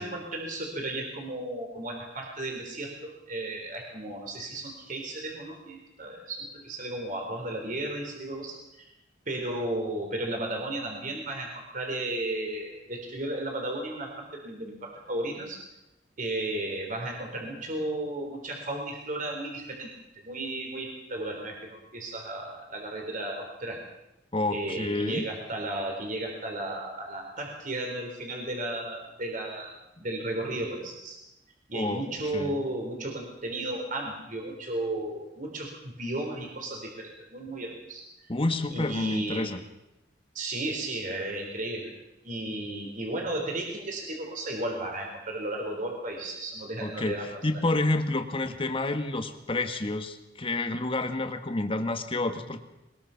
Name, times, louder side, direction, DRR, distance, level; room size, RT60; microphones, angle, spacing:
voice 1, 0.0-8.6 9.3-15.6 16.2-23.8 24.5-29.7 30.0-31.2 31.7-38.0 38.7-39.5 40.3-41.9 42.2-47.3, right 1 dB, 45° right, 1 dB, 3.9 m, -34 dB
voice 2, 24.3-25.2 31.7-32.0 32.3-32.6 38.3-39.6 46.8-52.6, left 2 dB, 30° left, 7 dB, 1.6 m, -29 dB
22.0 x 21.0 x 5.8 m, 0.92 s
head